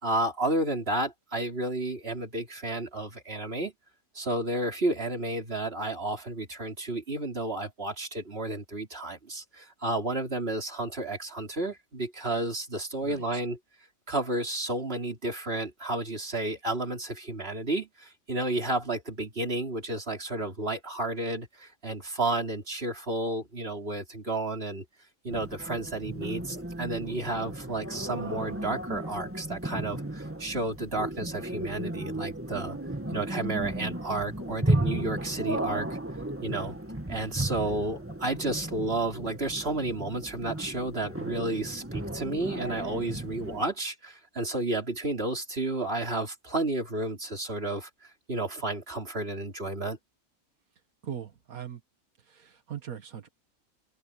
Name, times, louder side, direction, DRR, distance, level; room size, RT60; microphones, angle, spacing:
voice 1, 0.0-3.7 4.1-13.6 14.1-24.8 25.2-32.8 33.1-36.0 36.4-36.7 37.1-50.0, right 2 dB, 45° right, 4.1 m, -32 dB
sound 1, 25.3-43.6, right 1 dB, 10° right, 1.9 m, -34 dB
voice 2, 51.0-51.8 52.2-53.3, right 8 dB, 85° right, 1.9 m, -40 dB
open air
omnidirectional pair, 1.5 m